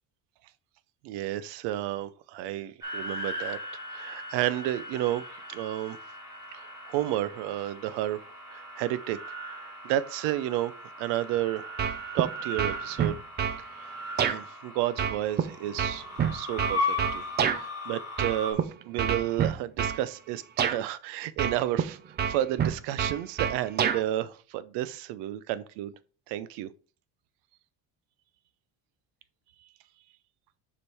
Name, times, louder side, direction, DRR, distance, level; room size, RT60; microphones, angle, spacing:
voice 1, 1.0-3.6 3.9-6.0 6.5-8.2 8.5-9.2 9.5-10.7 11.0-11.7 12.1-13.1 13.7-16.1 16.3-17.3 17.5-18.6 18.9-25.9 26.3-26.7 29.6-29.7, right 13 dB, 85° right, 0.7 m, -31 dB
sound 1, 2.8-18.5, left 1 dB, 10° right, 2.6 m, -38 dB
sound 2, 11.8-12.3 12.6-13.6 14.2-14.4 15.0-17.6 18.2-18.6 19.0-20.0 20.6-20.8 21.4-21.9 22.2-24.0, right 8 dB, 25° right, 0.4 m, -27 dB
7.0 x 5.0 x 3.4 m
cardioid pair, 160°, 40 cm